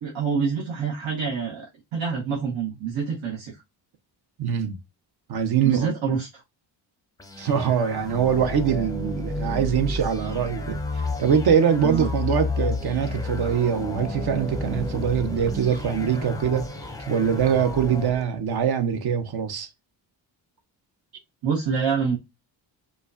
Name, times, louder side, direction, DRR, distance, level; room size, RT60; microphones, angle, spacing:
voice 1, 0.0-3.6 5.6-6.4 11.8-12.1 21.4-22.2, right 6 dB, 75° right, 1.0 m, -26 dB
voice 2, 4.4-4.8 5.3-5.9 7.4-16.7 17.1-19.7, right 7 dB, 55° right, 0.8 m, -23 dB
sound 1, 7.2-18.2, left 3 dB, 10° left, 0.6 m, -31 dB
4.9 x 2.2 x 2.4 m
cardioid pair, 90°, 46 cm